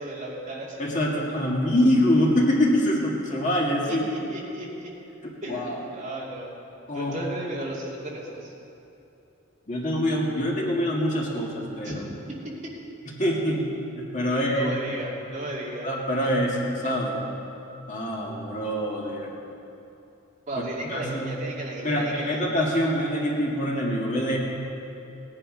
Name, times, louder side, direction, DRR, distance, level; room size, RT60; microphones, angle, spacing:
voice 1, 0.0-0.8 3.9-4.9 5.4-6.5 6.9-8.5 11.8-12.0 12.3-12.4 14.3-15.9 20.5-22.4, right 1 dB, 35° right, -5 dB, 2.5 m, -35 dB
voice 2, 0.8-4.0 5.2-5.8 6.9-7.2 9.7-11.9 13.2-13.6 14.0-14.7 15.8-17.2 17.9-19.3 20.9-21.4 21.8-24.4, equal, 35° left, -3 dB, 2.0 m, -25 dB
17.5 x 10.5 x 5.3 m, 2.8 s
head